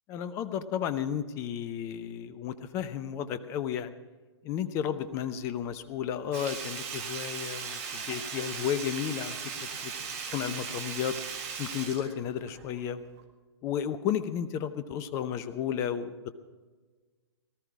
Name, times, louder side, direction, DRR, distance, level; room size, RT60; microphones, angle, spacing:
voice 1, 0.1-3.9 4.4-11.2 11.6-13.0 13.6-16.3, left 9 dB, 20° left, 13 dB, 0.7 m, -33 dB
Sink (filling or washing), 6.3-12.8 13.2-13.3, right 6 dB, 35° right, 2.0 m, -38 dB
18.5 x 13.0 x 4.8 m, 1.4 s
figure-of-eight pair, 125°, 14 cm